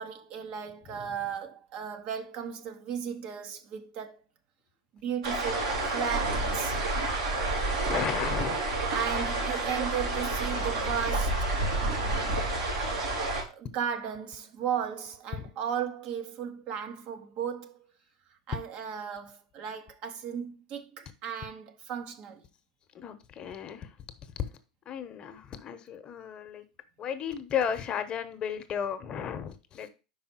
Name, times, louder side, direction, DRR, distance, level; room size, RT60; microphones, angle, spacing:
voice 1, 0.0-4.1 5.0-6.8 8.9-11.5 13.3-17.8 18.5-22.4, right 8 dB, 50° right, 1.0 m, -35 dB
voice 2, 0.9-1.2 7.8-8.6 22.9-23.9 24.4-24.5 24.9-26.6 27.0-29.9, left 8 dB, 35° left, 0.9 m, -34 dB
sound 1, 5.2-13.4, right 2 dB, 80° right, 2.5 m, -29 dB
5.2 x 4.8 x 4.5 m
hypercardioid pair, 95°, 3 cm